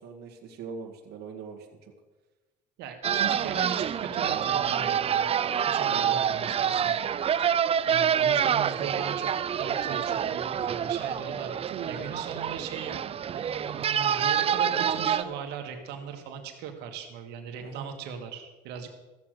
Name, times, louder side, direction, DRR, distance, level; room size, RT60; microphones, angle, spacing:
voice 1, 0.0-1.9 5.8-6.2 11.7-12.0 17.6-17.9, right 6 dB, 75° right, -1 dB, 2.0 m, -41 dB
voice 2, 2.8-5.3 5.7-7.0 7.4-7.5 7.9-9.3 9.6-11.5 11.9-13.0 13.3-18.9, right 7 dB, 90° right, 5 dB, 1.9 m, -38 dB
sound 1, 3.0-15.2, right 8 dB, 35° right, 0.4 m, -27 dB
14.0 x 7.8 x 6.6 m, 1.2 s
cardioid pair, 110°, 17 cm